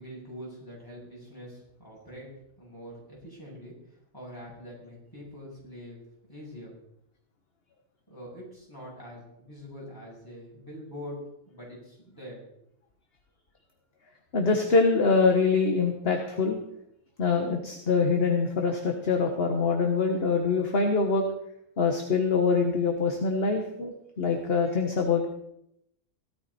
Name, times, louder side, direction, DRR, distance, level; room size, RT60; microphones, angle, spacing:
voice 1, 0.0-2.3 2.6-6.0 6.3-6.7 8.1-12.4, equal, 15° left, -5 dB, 7.7 m, -44 dB
voice 2, 14.3-16.6 17.2-21.2 21.8-25.3, left 4 dB, 40° left, 3 dB, 1.5 m, -24 dB
17.0 x 13.5 x 4.3 m, 0.77 s
omnidirectional pair, 1.6 m